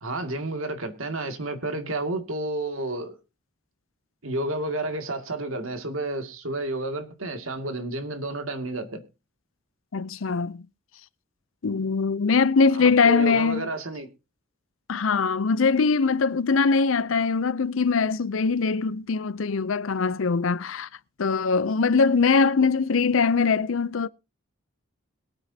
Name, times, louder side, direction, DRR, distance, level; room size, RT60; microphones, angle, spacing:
voice 1, 0.0-3.2 4.2-9.0 12.7-14.1, right 2 dB, 90° right, 2.3 m, -31 dB
voice 2, 9.9-10.6 11.6-13.7 14.9-20.9 21.2-24.1, left 4 dB, 80° left, 0.6 m, -22 dB
22.0 x 9.1 x 2.8 m
head